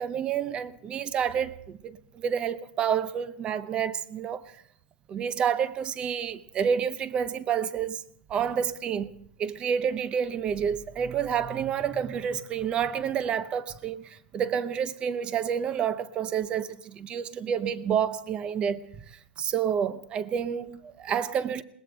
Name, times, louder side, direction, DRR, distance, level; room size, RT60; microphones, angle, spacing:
voice 1, 0.0-4.4 5.1-8.0 8.3-9.1 9.4-18.9 19.1-21.6, right 8 dB, 20° right, 0.6 m, -29 dB
21.5 x 19.0 x 3.4 m
hypercardioid pair, 160°, 6 cm